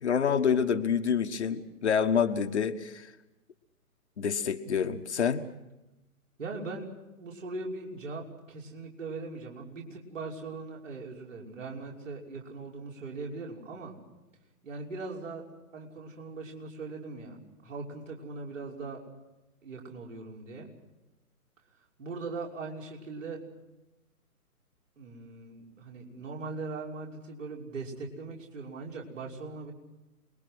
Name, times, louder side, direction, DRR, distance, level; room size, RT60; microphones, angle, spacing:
voice 1, 0.0-3.1 4.2-5.4, left 7 dB, 45° left, 7 dB, 1.5 m, -27 dB
voice 2, 6.4-6.9 7.2-14.0 14.6-15.4 15.7-17.4 17.6-19.0 19.6-20.7 21.8-23.4 25.0-29.7, right 3 dB, 55° right, -1 dB, 6.2 m, -40 dB
28.5 x 22.0 x 6.2 m, 1.0 s
figure-of-eight pair, 130°, 45 cm